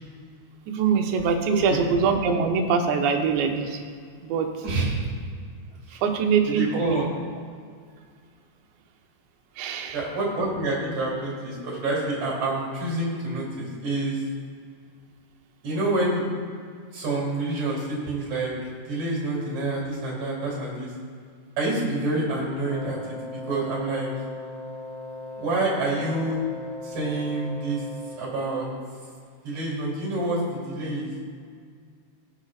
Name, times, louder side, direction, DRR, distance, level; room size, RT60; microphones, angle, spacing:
voice 1, 0.7-3.8 4.2-4.5 5.9-7.0 9.6-10.0, right 6 dB, 90° right, 3 dB, 3.2 m, -23 dB
voice 2, 4.6-5.0 5.9-6.0 6.5-7.1 9.9-14.2 15.6-16.2 16.9-18.5 18.8-20.9 21.6-23.0 23.5-24.1 25.4-26.4 26.8-27.8 28.2-28.7 29.4-31.2, right 2 dB, 45° right, -4 dB, 4.0 m, -27 dB
Wind instrument woodwind instrument, 22.6-28.4, left 2 dB, 45° left, 3.1 m, -38 dB
20.5 x 8.3 x 2.5 m, 2.1 s
omnidirectional pair, 4.9 m